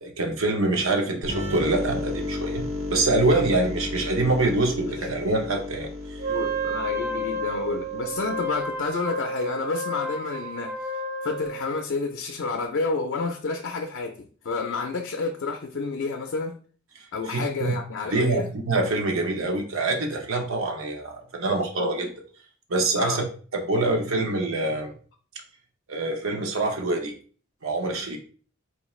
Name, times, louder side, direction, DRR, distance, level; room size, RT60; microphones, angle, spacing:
voice 1, 0.0-2.6 2.9-6.3 17.3-17.8 18.1-22.1 22.7-23.2 23.5-24.9 25.9-27.1 27.6-28.2, right 2 dB, 85° right, 0.7 m, -25 dB
sound 1, 1.2-8.8, left 2 dB, 65° right, 1.0 m, -33 dB
Wind instrument woodwind instrument, 6.2-11.8, right 1 dB, 50° right, 0.6 m, -31 dB
voice 2, 6.3-10.9 11.2-16.6 17.1-18.5 23.0-23.2, left 4 dB, 60° left, 0.4 m, -30 dB
4.1 x 2.3 x 3.0 m
head